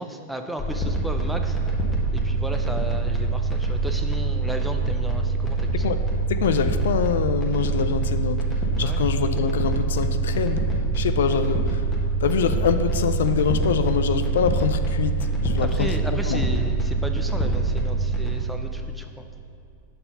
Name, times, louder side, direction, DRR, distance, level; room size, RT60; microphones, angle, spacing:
voice 1, 0.0-1.6 2.1-5.9 8.8-9.0 15.6-19.3, right 1 dB, 5° right, 5 dB, 0.5 m, -34 dB
sound 1, 0.6-18.4, right 3 dB, 15° left, 1.2 m, -24 dB
voice 2, 6.3-10.7 10.9-11.8 12.2-16.0 16.3-16.5, left 7 dB, 80° left, 10 dB, 0.3 m, -25 dB
5.7 x 4.2 x 5.4 m, 2.5 s
hypercardioid pair, 115°, 0 cm